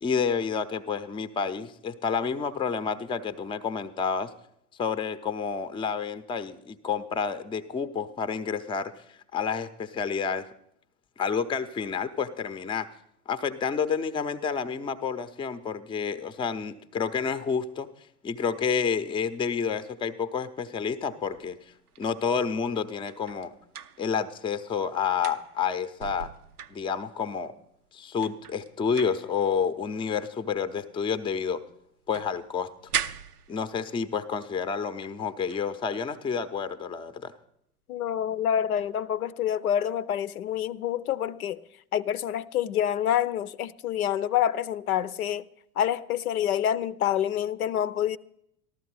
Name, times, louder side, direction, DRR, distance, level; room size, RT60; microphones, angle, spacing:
voice 1, 0.0-4.3 4.8-8.9 9.3-10.5 11.2-12.9 13.3-17.9 18.2-21.6 22.0-23.5 24.0-26.3 26.7-27.5 27.9-31.6 32.1-32.7 33.5-37.3, left 6 dB, 10° left, 0.5 m, -29 dB
sound 1, 21.3-24.6 24.9-27.3 27.9-28.0 28.2-31.5 31.8-34.1 34.8-35.2 35.5-35.7 38.8-39.0, right 8 dB, 85° right, 0.5 m, -40 dB
voice 2, 37.9-41.6 41.9-45.4 45.8-48.2, left 10 dB, 75° left, 0.6 m, -27 dB
14.5 x 12.5 x 4.7 m
figure-of-eight pair, 75°, 44 cm